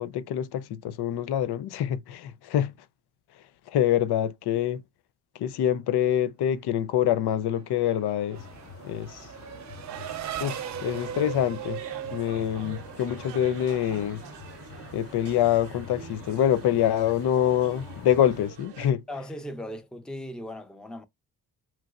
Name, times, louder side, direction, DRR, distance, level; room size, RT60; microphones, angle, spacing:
voice 1, 0.0-2.7 3.7-4.8 5.3-8.4 8.8-9.3 10.4-11.8 12.1-14.2 14.9-19.0, left 10 dB, 65° left, 0.5 m, -25 dB
Race car auto racing / Accelerating revving vroom, 7.3-13.4, right 10 dB, 45° right, 0.4 m, -38 dB
sound 1, 8.3-18.5, left 5 dB, 30° left, 0.8 m, -47 dB
sound 2, 9.9-18.9, right 8 dB, 70° right, 0.7 m, -45 dB
voice 2, 19.1-21.0, equal, ahead, 0.6 m, -38 dB
3.2 x 2.9 x 2.4 m
supercardioid pair, 50°, 43 cm